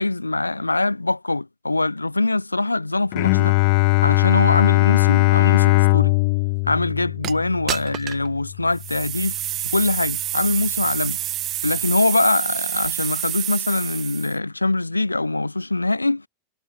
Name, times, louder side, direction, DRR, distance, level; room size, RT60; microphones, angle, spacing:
voice 1, 0.0-3.6 4.0-6.2 6.7-9.3 9.6-11.2 11.6-16.2, left 2 dB, 85° left, 3.5 m, -23 dB
Bowed string instrument, 3.1-8.8, left 29 dB, 45° left, 0.3 m, -19 dB
sound 1, 7.2-7.3 7.7-8.3 8.7-14.3, right 13 dB, 35° right, 0.8 m, -28 dB
figure-of-eight pair, 90°, 0 cm